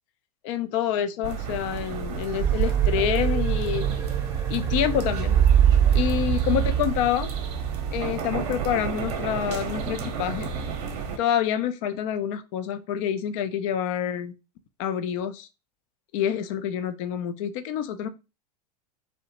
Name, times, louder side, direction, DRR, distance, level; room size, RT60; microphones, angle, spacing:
voice 1, 0.4-3.9 4.5-5.4 5.9-7.3 7.9-10.5 11.2-14.3 14.8-15.5 16.1-18.1, left 10 dB, 55° left, 11 dB, 0.4 m, -27 dB
sound 1, 1.2-11.2, right 6 dB, 55° right, 0.7 m, -32 dB
sound 2, 2.4-9.1, right 9 dB, 15° right, 0.6 m, -24 dB
2.7 x 2.1 x 2.8 m, 0.28 s
hypercardioid pair, 95°, 20 cm